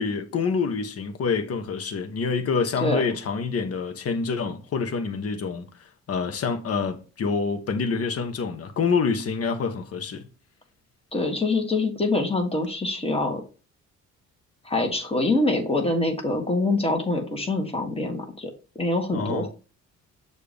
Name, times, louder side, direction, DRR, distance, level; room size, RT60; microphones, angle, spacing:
voice 1, 0.0-5.6 6.1-10.2 19.1-19.5, left 5 dB, 50° left, 1.1 m, -27 dB
voice 2, 11.1-13.4 14.6-19.5, left 2 dB, 20° left, 1.6 m, -25 dB
6.7 x 2.7 x 5.1 m
cardioid pair, 90°, 30 cm